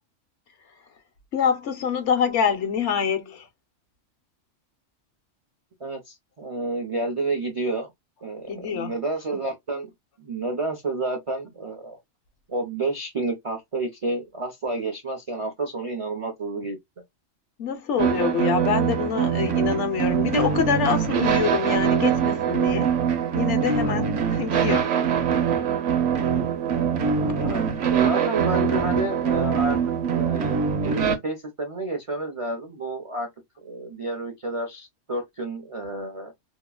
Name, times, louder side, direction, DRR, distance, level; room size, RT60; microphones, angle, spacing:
voice 1, 1.3-3.5 8.5-8.9 17.6-22.9 23.3-24.9, left 6 dB, 70° left, 0.9 m, -25 dB
voice 2, 5.8-7.9 8.2-9.9 10.2-12.0 12.5-16.8 27.2-29.8 30.1-33.3 33.6-36.3, right 2 dB, 50° right, 0.4 m, -30 dB
sound 1, 18.0-31.2, right 7 dB, 70° right, 1.0 m, -23 dB
2.9 x 2.3 x 2.2 m
omnidirectional pair, 1.3 m